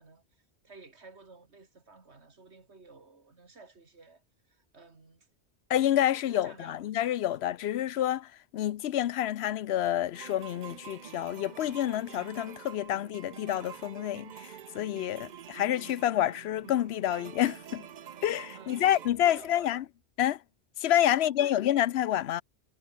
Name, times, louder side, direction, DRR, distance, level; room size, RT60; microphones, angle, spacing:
voice 1, 0.0-5.3 6.0-6.9 7.3-7.5 18.5-19.9 21.1-21.8, right 3 dB, 80° right, 2.9 m, -53 dB
voice 2, 5.7-17.9 18.2-19.8 20.2-20.4 20.8-22.4, left 12 dB, 75° left, 0.8 m, -28 dB
sound 1, 10.1-19.1, right 9 dB, 50° right, 0.6 m, -47 dB
omnidirectional pair, 1.1 m